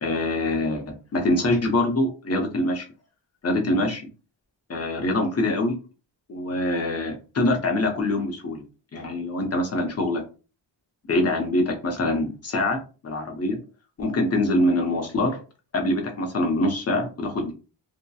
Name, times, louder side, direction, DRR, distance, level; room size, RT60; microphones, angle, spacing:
voice 1, 0.0-2.9 3.4-4.1 4.7-5.8 6.3-8.6 8.9-10.2 11.1-12.8 13.0-13.6 14.0-15.4 15.7-17.5, left 1 dB, 30° left, 3 dB, 0.7 m, -24 dB
2.8 x 2.1 x 2.2 m, 0.33 s
wide cardioid pair, 115°, 48 cm